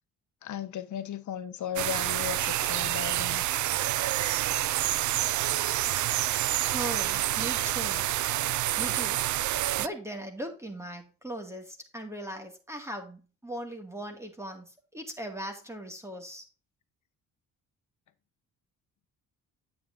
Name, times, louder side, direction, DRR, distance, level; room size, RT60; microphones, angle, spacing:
voice 1, 0.4-3.4, left 10 dB, 60° left, 1.2 m, -36 dB
sound 1, 1.8-9.9, right 14 dB, 60° right, 0.5 m, -28 dB
voice 2, 6.6-8.1 8.8-9.2 9.8-16.5, right 1 dB, 10° right, 2.1 m, -39 dB
9.4 x 8.7 x 2.7 m
cardioid pair, 120°, 33 cm